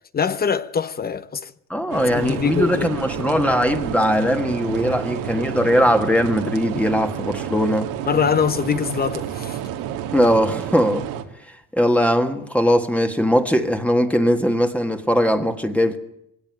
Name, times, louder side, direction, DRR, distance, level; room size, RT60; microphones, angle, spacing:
voice 1, 0.1-1.5 2.1-2.9 8.1-9.6, left 7 dB, 30° left, 0.8 m, -23 dB
voice 2, 1.7-7.9 10.1-11.1 11.4-16.0, equal, 5° left, 1.5 m, -20 dB
sound 1, 1.9-11.2, right 10 dB, 85° right, 2.3 m, -30 dB
21.5 x 17.0 x 9.0 m
cardioid pair, 135°, 34 cm